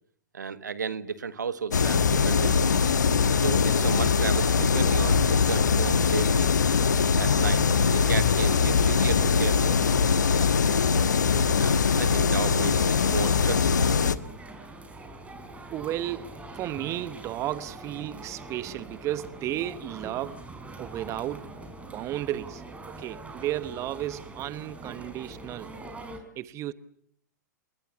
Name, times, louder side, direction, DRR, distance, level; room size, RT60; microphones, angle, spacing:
voice 1, 0.3-2.7 3.4-6.5 7.2-7.6 7.9-9.8 11.6-13.8, right 6 dB, 75° right, 1.7 m, -33 dB
sound 1, 1.7-14.1, left 5 dB, 75° left, 1.4 m, -22 dB
sound 2, 7.1-26.2, right 2 dB, 15° right, 5.6 m, -43 dB
voice 2, 15.7-16.3 16.5-20.5 20.8-21.5 21.9-25.7 26.4-26.7, right 13 dB, 30° right, 1.1 m, -33 dB
29.0 x 21.5 x 8.1 m
figure-of-eight pair, 100°, 10 cm